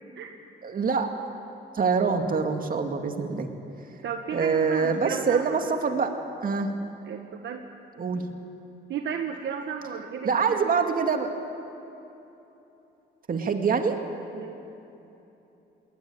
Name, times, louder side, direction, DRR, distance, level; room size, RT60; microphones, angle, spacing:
voice 1, 0.6-1.1 1.7-3.5 4.3-6.1 6.4-6.7 8.0-8.2 10.2-11.3 13.3-14.0, right 5 dB, 45° right, 5 dB, 2.3 m, -25 dB
voice 2, 4.0-5.7 7.0-7.6 8.9-10.8 14.3-14.6, right 7 dB, 70° right, 4 dB, 1.3 m, -34 dB
20.0 x 19.5 x 9.0 m, 2.9 s
cardioid pair, 90°, 20 cm